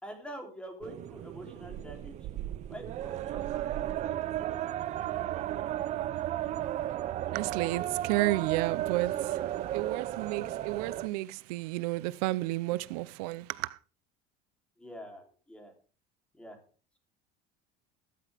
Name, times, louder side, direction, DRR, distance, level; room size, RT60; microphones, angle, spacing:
voice 1, 0.0-2.3 2.7-3.9 14.8-15.7 16.3-16.6, equal, 5° left, 3.4 m, -46 dB
sound 1, 0.8-11.1, right 13 dB, 35° right, 0.7 m, -34 dB
voice 2, 7.3-13.8, right 18 dB, 85° right, 0.7 m, -32 dB
14.5 x 14.0 x 3.5 m
cardioid pair, 165°, 20 cm